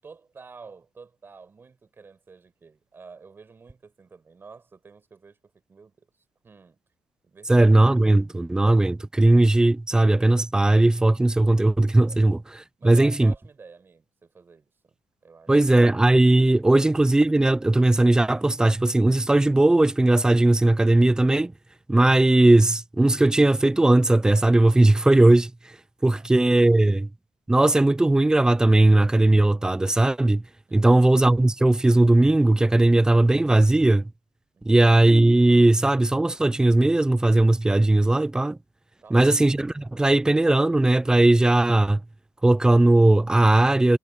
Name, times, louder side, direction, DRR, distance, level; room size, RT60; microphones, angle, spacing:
voice 1, 0.0-6.8 7.2-7.8 8.3-8.4 12.0-12.3 12.8-15.0 15.2-15.9 26.1-26.3 30.7-31.0 34.5-34.8 39.0-39.3, right 4 dB, 20° right, 6.6 m, -49 dB
voice 2, 7.5-12.4 12.8-13.3 15.5-21.5 21.9-25.5 26.0-27.1 27.5-30.4 30.7-34.1 34.7-38.6 39.1-42.0 42.4-44.0, right 2 dB, 5° right, 0.4 m, -18 dB
cardioid pair, 180°, 10 cm